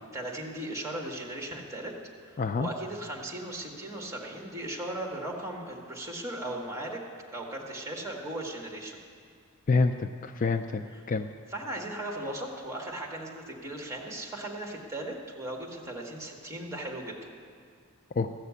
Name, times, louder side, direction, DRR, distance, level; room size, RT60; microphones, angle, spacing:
voice 1, 0.1-1.9 2.3-7.0 7.3-9.0 10.9-11.0 11.5-17.2, right 1 dB, 15° right, -1 dB, 1.6 m, -37 dB
voice 2, 2.4-2.7 9.7-11.3 18.2-18.3, left 4 dB, 40° left, 7 dB, 0.4 m, -27 dB
14.5 x 6.6 x 8.3 m, 2.1 s
head